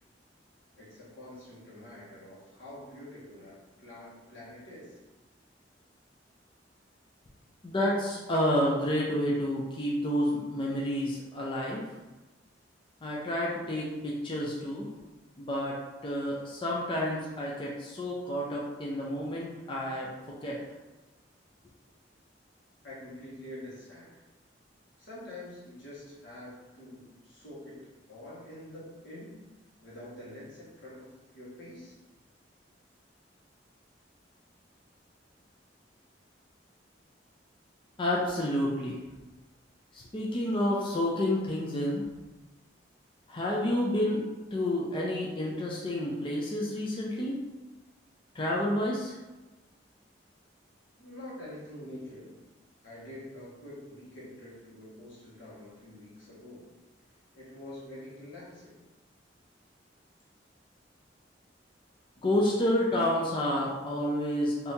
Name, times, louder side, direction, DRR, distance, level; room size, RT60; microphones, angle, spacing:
voice 1, 0.7-5.0 22.8-24.2 25.0-29.5 29.8-32.0 51.0-52.5 52.8-56.7 57.3-58.8, left 1 dB, 85° left, -7 dB, 1.3 m, -46 dB
voice 2, 7.6-11.8 13.0-14.9 15.4-20.6 38.0-39.0 39.9-42.0 43.3-44.2 44.5-47.4 48.3-49.1 62.2-64.7, left 1 dB, 30° left, -4 dB, 0.4 m, -29 dB
2.8 x 2.7 x 3.5 m, 1.1 s
head